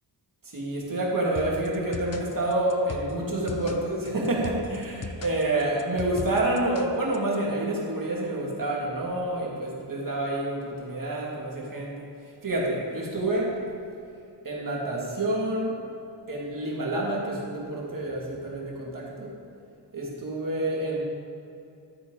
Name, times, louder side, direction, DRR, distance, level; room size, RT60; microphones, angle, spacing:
voice 1, 0.4-12.0 12.4-13.6 14.4-15.8 16.3-19.3 19.9-21.0, right 1 dB, 45° right, -4 dB, 2.8 m, -28 dB
sound 1, 1.4-7.4, left 4 dB, 35° left, 0.7 m, -39 dB
12.0 x 9.9 x 4.1 m, 2.6 s
wide cardioid pair, 105°, 45 cm